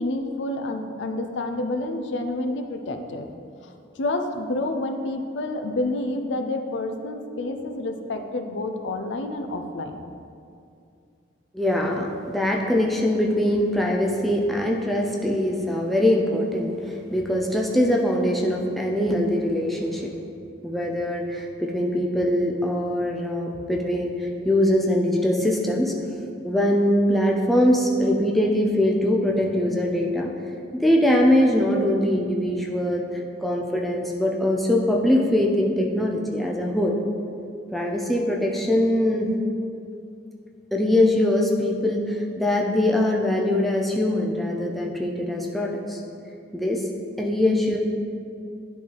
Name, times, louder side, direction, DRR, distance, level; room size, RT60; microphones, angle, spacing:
voice 1, 0.0-3.3 4.0-10.1, left 2 dB, 70° left, 6 dB, 0.5 m, -29 dB
voice 2, 11.5-20.1 20.6-25.9 26.4-30.3 30.8-33.1 33.4-37.0 37.7-39.3 40.7-46.0 46.5-46.8 47.2-47.8, left 1 dB, ahead, -2 dB, 0.5 m, -22 dB
10.5 x 3.9 x 3.4 m, 2.5 s
head